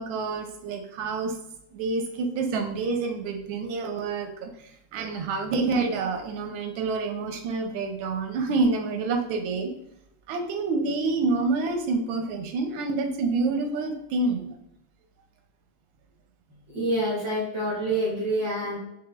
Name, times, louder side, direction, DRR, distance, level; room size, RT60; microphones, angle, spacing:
voice 1, 0.0-1.3 1.7-9.7 10.3-14.6, right 3 dB, 90° right, 5 dB, 1.5 m, -28 dB
voice 2, 16.7-18.8, right 1 dB, 65° right, -7 dB, 1.8 m, -27 dB
5.0 x 3.2 x 2.3 m, 0.83 s
omnidirectional pair, 2.1 m